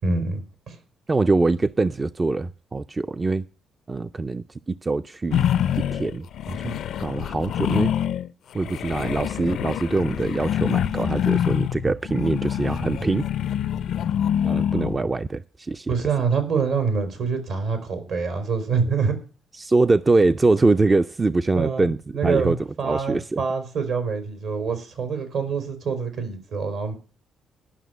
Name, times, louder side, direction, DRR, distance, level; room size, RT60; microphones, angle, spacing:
voice 1, 0.0-0.8 15.9-19.1 21.5-26.9, right 5 dB, 70° right, 7 dB, 3.7 m, -26 dB
voice 2, 1.1-3.5 3.9-5.5 5.8-7.9 8.5-13.3 14.4-15.9 19.6-22.6 22.8-23.4, right 3 dB, 25° right, 11 dB, 0.4 m, -23 dB
sound 1, 5.3-8.3 8.6-15.1, left 10 dB, 75° left, 0.5 m, -25 dB
11.5 x 6.0 x 8.0 m, 0.38 s
cardioid pair, 90°, 0 cm